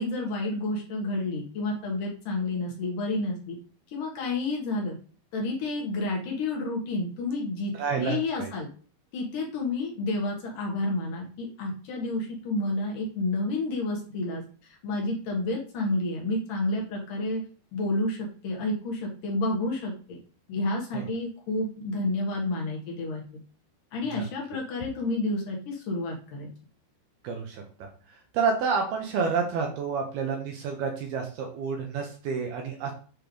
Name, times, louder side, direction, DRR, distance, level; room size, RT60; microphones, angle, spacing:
voice 1, 0.0-3.6 3.9-4.9 5.3-8.7 9.1-17.4 17.7-20.2 20.5-23.2 23.9-26.5, left 2 dB, 65° left, -2 dB, 2.2 m, -30 dB
voice 2, 7.8-8.5 20.9-21.1 24.1-24.2 27.2-27.9 28.3-32.9, right 5 dB, 75° right, 2 dB, 2.5 m, -29 dB
7.9 x 3.3 x 5.1 m, 0.41 s
omnidirectional pair, 5.3 m